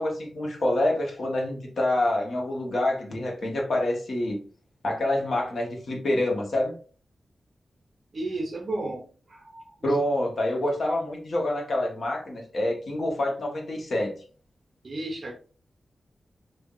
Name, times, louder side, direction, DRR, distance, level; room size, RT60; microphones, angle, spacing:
voice 1, 0.0-4.4 4.8-6.7 9.8-14.1, left 1 dB, 60° left, 1.2 m, -27 dB
voice 2, 8.1-10.0 14.8-15.3, right 2 dB, 45° right, 0.5 m, -33 dB
5.5 x 2.6 x 2.4 m
wide cardioid pair, 180°, 0 cm